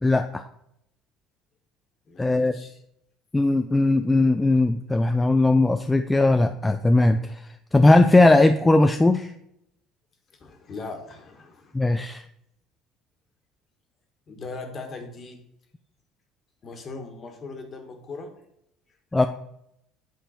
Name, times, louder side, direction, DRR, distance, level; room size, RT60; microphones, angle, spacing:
voice 1, 0.0-0.4 2.2-2.5 3.3-7.3 7.7-9.3 11.7-12.2 19.1-19.3, left 2 dB, 10° left, 7 dB, 0.3 m, -19 dB
voice 2, 2.1-2.8 10.4-11.7 14.3-15.4 16.6-18.3, left 3 dB, 35° left, 4 dB, 1.5 m, -39 dB
8.8 x 3.7 x 4.3 m, 0.78 s
supercardioid pair, 105°, 0 cm